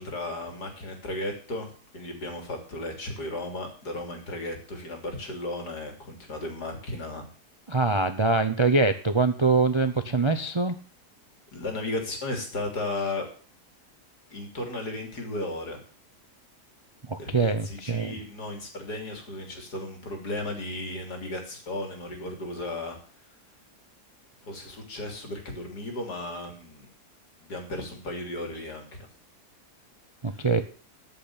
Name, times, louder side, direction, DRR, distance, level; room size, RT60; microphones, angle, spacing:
voice 1, 0.0-7.2 11.5-13.3 14.3-15.8 17.2-23.0 24.4-26.9 27.4-29.1 30.3-30.6, left 2 dB, 75° left, 4 dB, 3.8 m, -35 dB
voice 2, 7.7-10.8 17.1-18.1 30.2-30.6, right 3 dB, 30° right, 9 dB, 0.5 m, -24 dB
14.0 x 6.1 x 8.5 m, 0.40 s
omnidirectional pair, 1.7 m